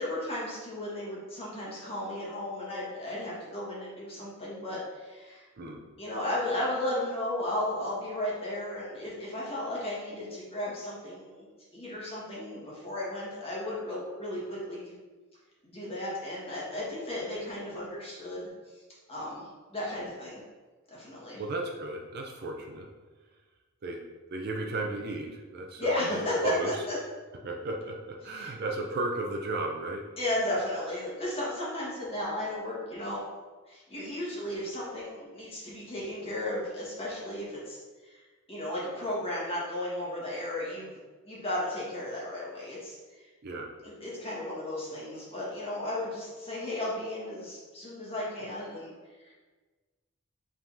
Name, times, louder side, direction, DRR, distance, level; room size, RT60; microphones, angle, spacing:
voice 1, 0.0-5.5 6.0-11.5 11.7-14.9 15.6-18.5 19.1-20.4 20.9-21.4 25.8-27.0 28.3-28.5 30.2-33.2 33.7-38.2 38.5-41.0 41.2-43.3 43.8-48.9 49.2-49.3, left 1 dB, 25° left, -7 dB, 1.5 m, -34 dB
voice 2, 21.4-22.9 23.8-24.0 24.3-25.9 26.4-26.8 27.4-30.0 43.4-43.7, right 2 dB, 45° right, 2 dB, 0.5 m, -34 dB
4.9 x 3.7 x 2.7 m, 1.3 s
head